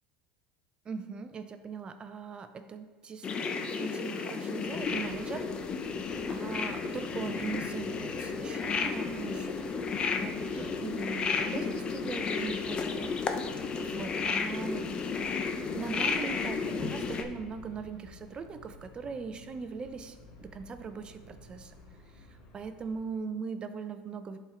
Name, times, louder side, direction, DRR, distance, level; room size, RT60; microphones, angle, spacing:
voice 1, 0.8-3.3 3.6-5.5 6.3-14.9 15.7-21.7 22.1-24.4, right 5 dB, 30° right, 10 dB, 0.6 m, -40 dB
sound 1, 3.2-17.2, left 5 dB, 35° left, 0.7 m, -33 dB
sound 2, 4.5-23.2, left 2 dB, 65° left, 2.0 m, -52 dB
10.5 x 4.4 x 3.8 m, 1.3 s
supercardioid pair, 95°, 3 cm